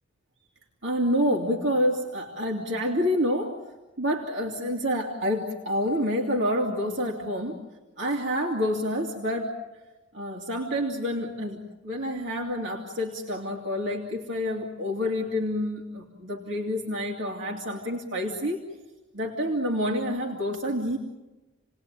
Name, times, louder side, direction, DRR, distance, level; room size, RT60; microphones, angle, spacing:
voice 1, 0.8-3.5 4.0-7.6 8.0-9.5 10.1-18.6 19.1-21.0, equal, 65° right, 0 dB, 2.5 m, -28 dB
29.5 x 20.0 x 9.0 m, 1.1 s
head